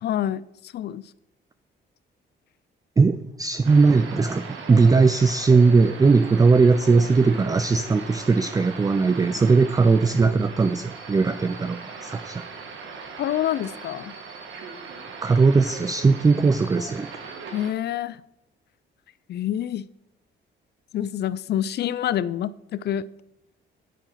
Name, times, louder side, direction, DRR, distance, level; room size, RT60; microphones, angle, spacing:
voice 1, 0.0-1.1 13.2-14.1 17.5-18.2 19.3-19.9 20.9-23.1, left 11 dB, 55° left, 17 dB, 0.4 m, -27 dB
voice 2, 3.0-12.4 15.2-17.1, right 4 dB, 20° right, 12 dB, 0.4 m, -19 dB
sound 1, 3.6-17.7, right 5 dB, 80° right, 1.4 m, -39 dB
9.3 x 4.9 x 5.7 m, 0.89 s
cardioid pair, 90°, 20 cm